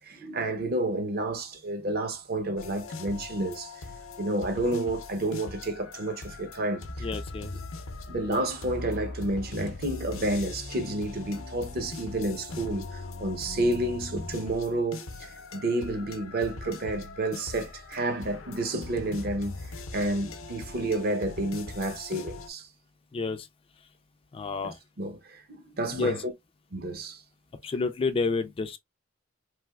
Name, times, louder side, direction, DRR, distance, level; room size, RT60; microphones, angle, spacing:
voice 1, 0.0-3.9 4.2-7.1 8.1-19.6 19.9-22.7 24.6-24.7 25.0-26.2 26.7-27.2, right 1 dB, 50° right, 0.7 m, -30 dB
sound 1, 2.6-22.5, left 2 dB, 75° left, 0.6 m, -40 dB
voice 2, 7.0-7.5 23.1-23.5 24.3-24.8 25.9-26.1 27.6-28.8, left 4 dB, 25° left, 0.3 m, -29 dB
3.3 x 2.7 x 2.2 m
head